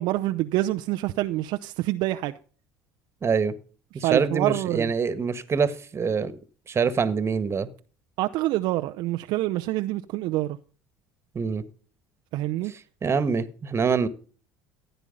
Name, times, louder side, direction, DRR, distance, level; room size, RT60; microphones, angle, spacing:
voice 1, 0.0-2.3 4.0-4.9 8.2-10.6 12.3-12.7, right 16 dB, 60° right, 0.6 m, -26 dB
voice 2, 3.2-3.5 3.9-6.3 6.7-7.7 11.3-11.6 12.6-14.1, right 5 dB, 30° right, 1.6 m, -25 dB
15.5 x 9.1 x 5.4 m
hypercardioid pair, 70°, 8 cm